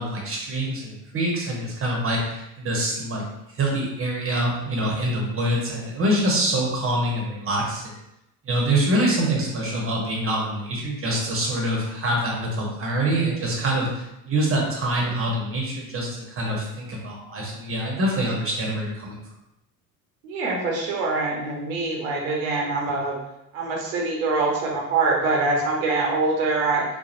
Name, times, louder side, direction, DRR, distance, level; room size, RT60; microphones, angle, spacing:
voice 1, 0.0-3.2 3.6-7.9 8.4-19.2, right 1 dB, 35° right, -2 dB, 1.0 m, -25 dB
voice 2, 20.2-23.2 23.5-26.8, right 3 dB, 85° right, -2 dB, 0.9 m, -24 dB
2.9 x 2.4 x 2.5 m, 0.87 s
hypercardioid pair, 75°, 41 cm